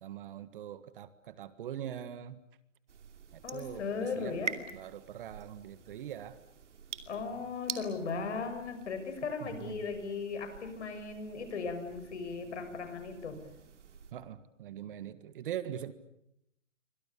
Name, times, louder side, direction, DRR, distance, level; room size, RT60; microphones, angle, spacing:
voice 1, 0.0-2.4 3.3-6.4 9.4-9.9 14.1-15.9, right 10 dB, 45° right, 13 dB, 1.7 m, -42 dB
sound 1, 2.9-14.1, right 6 dB, 70° right, 2.7 m, -47 dB
voice 2, 3.4-4.5 7.1-13.4, left 5 dB, 65° left, 8 dB, 6.4 m, -37 dB
29.5 x 24.5 x 7.1 m, 0.79 s
hypercardioid pair, 145°, 37 cm